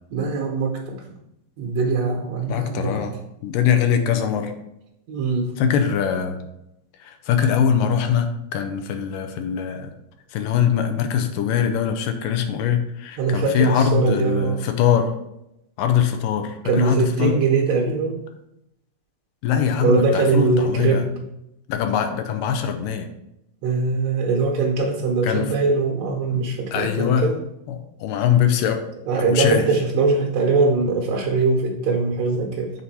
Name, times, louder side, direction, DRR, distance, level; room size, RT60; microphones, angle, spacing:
voice 1, 0.1-1.0 1.6-3.0 5.1-5.5 13.2-14.7 16.6-18.2 19.8-21.1 23.6-27.4 29.1-32.7, right 4 dB, 65° right, 0 dB, 1.8 m, -21 dB
voice 2, 2.5-3.2 3.4-4.5 5.6-6.4 7.0-9.9 10.3-15.1 15.8-17.4 19.4-21.1 21.7-23.1 25.2-25.5 26.3-26.5 26.7-27.3 27.7-28.8 29.2-29.7, left 8 dB, 90° left, 6 dB, 2.3 m, -22 dB
7.9 x 4.1 x 4.2 m, 0.85 s
omnidirectional pair, 3.8 m